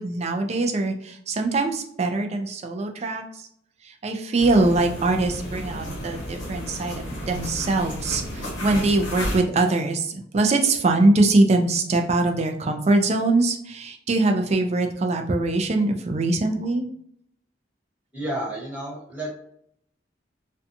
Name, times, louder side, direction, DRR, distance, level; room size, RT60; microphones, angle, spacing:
voice 1, 0.0-3.5 3.8-16.9, right 2 dB, 35° right, 4 dB, 0.3 m, -22 dB
sound 1, 4.4-9.4, equal, 85° left, 1.1 m, -32 dB
voice 2, 18.1-19.3, right 1 dB, 10° right, -6 dB, 1.0 m, -31 dB
2.5 x 2.2 x 2.6 m, 0.69 s
head